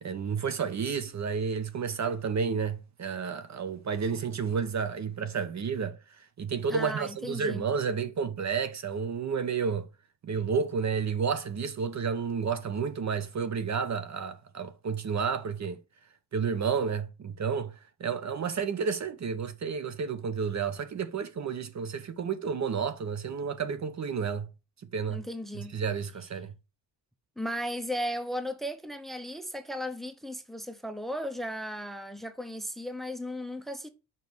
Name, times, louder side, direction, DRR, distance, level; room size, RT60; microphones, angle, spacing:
voice 1, 0.0-6.0 6.4-9.9 10.2-15.8 16.3-17.7 18.0-24.5 24.9-25.2 25.7-26.5, right 6 dB, 40° right, 0.8 m, -31 dB
voice 2, 6.7-7.7 25.1-25.8 27.4-33.9, equal, ahead, 0.8 m, -36 dB
5.5 x 5.3 x 6.1 m
cardioid pair, 105°, 41 cm